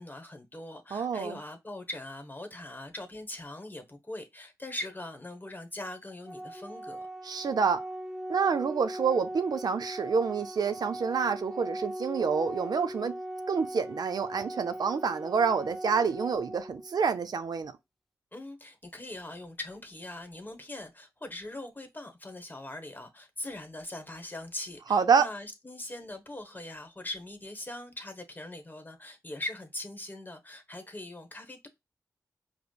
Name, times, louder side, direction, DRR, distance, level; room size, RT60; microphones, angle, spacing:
voice 1, 0.0-7.1 18.3-31.7, left 1 dB, 25° left, 1.0 m, -41 dB
voice 2, 0.9-1.4 7.2-7.8 8.3-13.1 13.5-17.7 24.9-25.3, right 6 dB, 70° right, 0.5 m, -27 dB
Organ, 6.3-17.2, right 1 dB, ahead, 0.5 m, -39 dB
4.9 x 2.0 x 2.3 m
cardioid pair, 50°, 7 cm